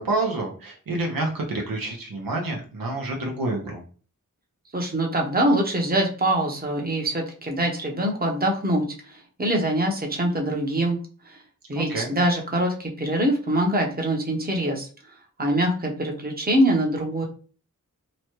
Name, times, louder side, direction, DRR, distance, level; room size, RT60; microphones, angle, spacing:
voice 1, 0.0-3.8 11.7-12.1, right 2 dB, 90° right, 0 dB, 0.7 m, -28 dB
voice 2, 4.7-11.0 11.3-11.4 11.7-14.9 15.4-17.2, right 1 dB, 25° right, 1 dB, 0.8 m, -24 dB
3.0 x 2.2 x 3.0 m, 0.40 s
cardioid pair, 40°, 34 cm